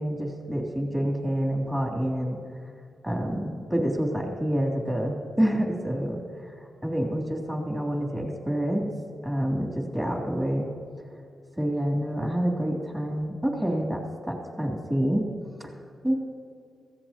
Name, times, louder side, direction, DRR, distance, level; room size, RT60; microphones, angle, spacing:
voice 1, 0.0-2.4 3.0-6.2 6.8-8.9 9.2-10.7 11.5-15.3 15.6-15.7 16.0-16.2, equal, 10° right, -1 dB, 3.3 m, -27 dB
20.0 x 16.0 x 3.0 m, 2.4 s
cardioid pair, 70°, 0 cm